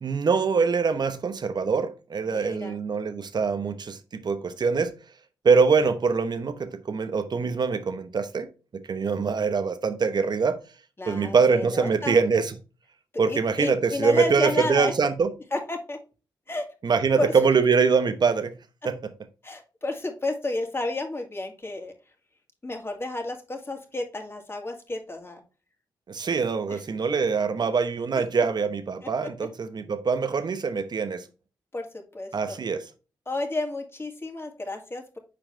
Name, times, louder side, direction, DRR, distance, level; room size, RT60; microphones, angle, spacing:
voice 1, 0.0-5.0 5.4-10.6 11.1-12.5 13.2-15.3 16.8-18.6 18.8-19.1 26.1-31.2 32.3-32.8, right 5 dB, 55° right, 0.9 m, -24 dB
voice 2, 2.3-2.8 11.0-12.2 13.3-14.9 15.5-16.0 16.5-16.6 17.2-17.3 19.4-21.9 22.6-25.4 26.7-26.8 29.2-29.3 31.7-32.6 33.3-35.2, left 2 dB, 25° left, 2.1 m, -31 dB
6.3 x 4.8 x 3.2 m
supercardioid pair, 45°, 9 cm